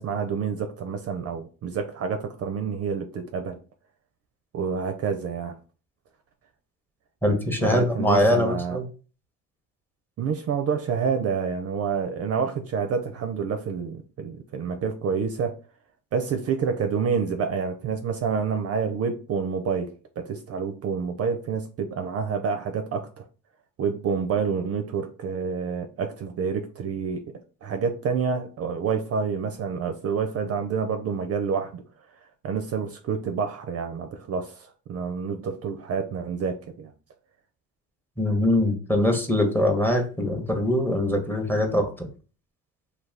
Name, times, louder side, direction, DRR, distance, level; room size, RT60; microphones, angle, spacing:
voice 1, 0.0-3.6 4.5-5.5 7.6-8.8 10.2-15.6 16.1-19.9 20.2-23.3 23.8-27.2 27.6-31.8 32.4-36.9, right 6 dB, 45° right, 0.4 m, -28 dB
voice 2, 7.2-8.8 38.2-42.1, left 1 dB, 5° left, 0.7 m, -23 dB
2.3 x 2.3 x 3.2 m
supercardioid pair, 65°, 36 cm